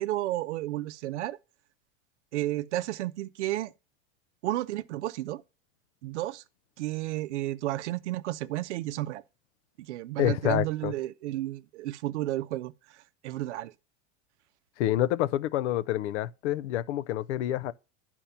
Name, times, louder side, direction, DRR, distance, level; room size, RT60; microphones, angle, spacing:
voice 1, 0.0-1.4 2.3-3.7 4.4-5.4 6.0-6.4 6.8-9.2 9.9-12.7 13.2-13.7, right 15 dB, 85° right, 0.6 m, -32 dB
voice 2, 10.2-10.9 14.8-17.7, left 13 dB, 80° left, 0.6 m, -28 dB
10.0 x 4.5 x 5.6 m
supercardioid pair, 120°, 34 cm